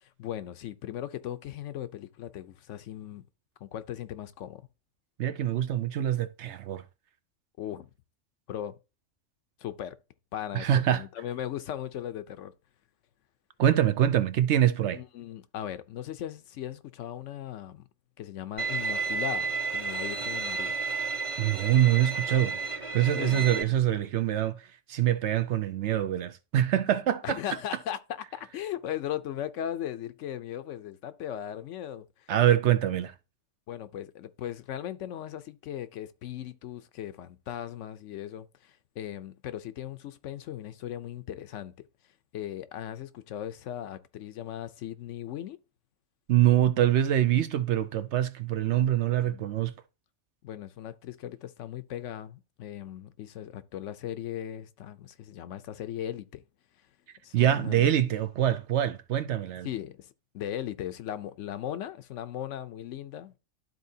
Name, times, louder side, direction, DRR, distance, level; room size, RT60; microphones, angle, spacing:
voice 1, 0.0-3.2 3.6-4.6 7.6-7.9 8.5-8.8 9.6-10.0 10.3-12.5 14.9-17.9 18.2-20.7 23.1-23.5 27.2-28.0 28.3-32.3 33.7-41.7 42.3-45.6 49.0-49.5 50.4-56.4 57.2-57.9 59.6-60.1 60.3-63.4, left 11 dB, 75° left, 0.9 m, -38 dB
voice 2, 5.2-6.8 10.5-11.0 13.6-15.0 21.4-27.4 32.3-33.1 46.3-49.7 57.3-59.7, right 11 dB, 65° right, 0.9 m, -25 dB
Bowed string instrument, 18.6-23.6, right 4 dB, 30° right, 0.9 m, -32 dB
12.0 x 4.1 x 2.7 m
omnidirectional pair, 1.3 m